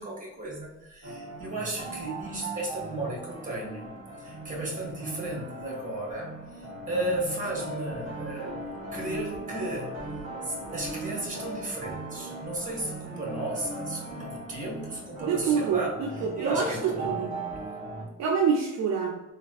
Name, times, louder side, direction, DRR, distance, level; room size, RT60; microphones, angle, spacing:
voice 1, 0.0-3.9 4.2-6.3 6.6-8.6 8.9-10.0 10.4-17.2, right 1 dB, 25° right, -2 dB, 1.4 m, -34 dB
sound 1, 1.0-18.0, right 2 dB, 45° right, 1.1 m, -39 dB
voice 2, 15.2-16.8 17.0-17.3 18.2-19.2, right 6 dB, 65° right, 0 dB, 0.5 m, -27 dB
3.4 x 2.3 x 2.3 m, 1.0 s
cardioid pair, 90°, 30 cm